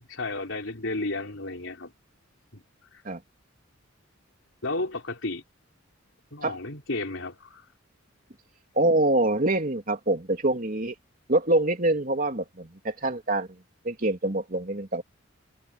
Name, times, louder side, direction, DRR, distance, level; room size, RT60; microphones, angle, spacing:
voice 1, 0.1-1.9 2.5-2.6 2.9-3.0 4.6-5.4 6.3-7.6, left 2 dB, 70° left, 4.3 m, -32 dB
voice 2, 8.7-10.9 11.3-13.6 13.8-15.0, right 2 dB, 45° right, 3.1 m, -25 dB
head